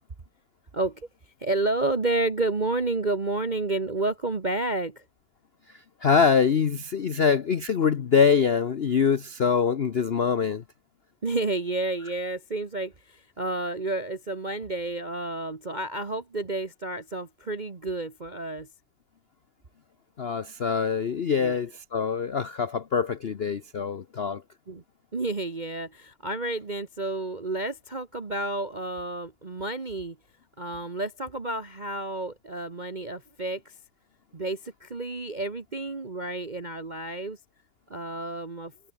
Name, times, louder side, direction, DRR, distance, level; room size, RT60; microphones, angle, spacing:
voice 1, 0.7-1.1 1.4-5.0 7.2-7.3 11.2-18.7 21.4-21.6 24.7-24.8 25.1-30.2 30.6-33.7 34.3-37.4 37.9-38.7, right 2 dB, 25° right, 1.3 m, -30 dB
voice 2, 6.0-10.6 20.2-24.4, left 6 dB, 85° left, 0.5 m, -24 dB
omnidirectional pair, 2.3 m